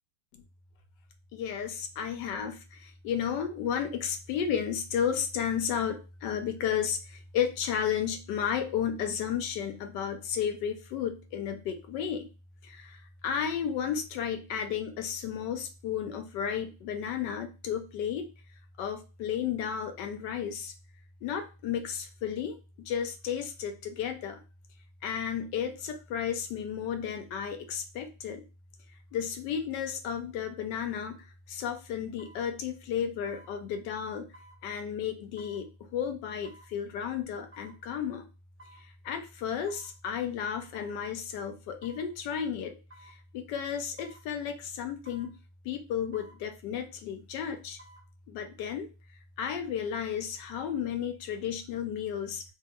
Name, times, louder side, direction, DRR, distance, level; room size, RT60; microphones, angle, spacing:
voice 1, 1.3-12.3 12.6-18.3 18.8-20.7 21.2-24.4 25.0-28.4 29.1-34.3 34.6-38.3 38.8-45.4 45.6-47.8 48.3-48.9 49.4-52.4, left 8 dB, 75° left, 6 dB, 1.1 m, -33 dB
sound 1, 31.0-31.2 32.2-32.4 33.3-33.5 34.3-34.6 35.4-35.6 36.4-36.7 37.5-37.8 38.6-38.9 39.7-39.9 40.7-41.0 41.8-42.1 42.9-43.2 44.0-44.2 45.0-45.3 46.1-46.4 47.6-48.0 48.5-48.6, right 1 dB, 25° right, 0.9 m, -54 dB
2.8 x 2.7 x 3.6 m, 0.31 s
omnidirectional pair, 2.2 m